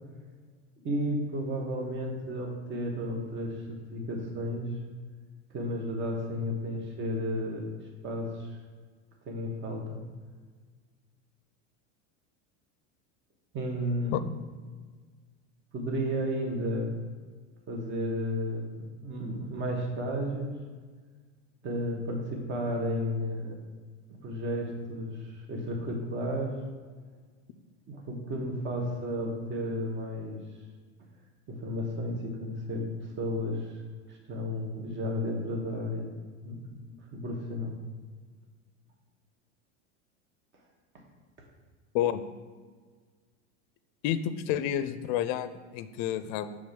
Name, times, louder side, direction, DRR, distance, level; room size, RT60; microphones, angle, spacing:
voice 1, 0.8-4.7 5.5-7.7 8.0-8.5 9.3-10.0 13.5-14.2 15.7-16.9 17.7-20.6 21.6-23.6 24.2-26.5 27.9-30.4 31.5-32.9 33.2-33.8 34.1-36.1 36.4-36.6 37.1-37.7, equal, 35° right, 1 dB, 1.2 m, -33 dB
voice 2, 44.0-46.6, left 11 dB, 50° left, 12 dB, 0.5 m, -30 dB
5.3 x 3.5 x 5.2 m, 1.5 s
supercardioid pair, 110°, 35 cm